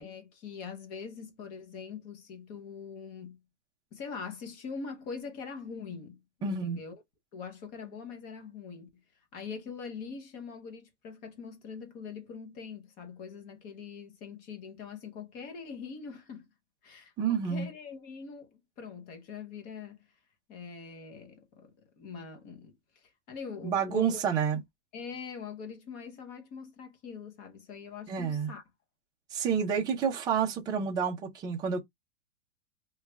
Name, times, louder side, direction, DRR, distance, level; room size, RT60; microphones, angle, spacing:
voice 1, 0.0-3.4 3.9-7.0 7.3-8.9 9.3-16.5 16.8-20.0 20.5-24.2 24.5-24.6 24.9-28.6, left 5 dB, 25° left, 0.7 m, -43 dB
voice 2, 6.4-6.8 17.2-17.7 23.6-24.6 28.1-28.5 29.3-31.8, right 7 dB, 10° right, 0.5 m, -29 dB
3.1 x 2.3 x 3.2 m
supercardioid pair, 160°, 37 cm